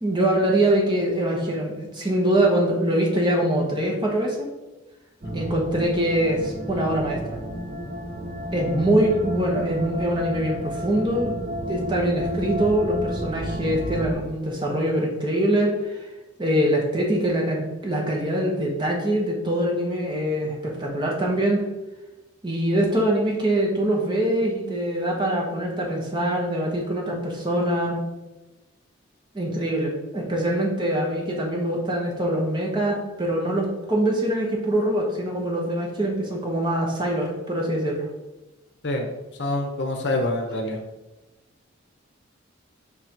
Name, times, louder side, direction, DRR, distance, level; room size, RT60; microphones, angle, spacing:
voice 1, 0.0-4.5 5.3-7.4 8.5-11.3 11.7-16.1 16.4-21.6 22.4-28.0 29.3-38.1, right 1 dB, 25° right, -2 dB, 1.2 m, -23 dB
sound 1, 5.2-14.1, equal, 40° right, 0.9 m, -31 dB
voice 2, 39.4-40.8, left 1 dB, 55° left, 4 dB, 0.8 m, -26 dB
5.4 x 3.9 x 4.5 m, 1.1 s
head